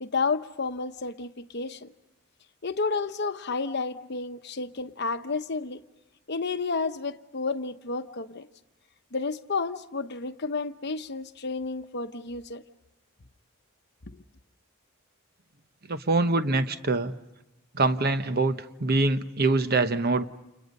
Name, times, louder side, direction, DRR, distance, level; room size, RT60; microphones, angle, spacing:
voice 1, 0.0-1.9 2.6-5.8 6.3-8.5 9.1-12.6, left 4 dB, 50° left, 0.9 m, -31 dB
voice 2, 15.9-17.1 17.7-20.3, right 3 dB, 50° right, 1.0 m, -24 dB
30.0 x 29.0 x 5.4 m
head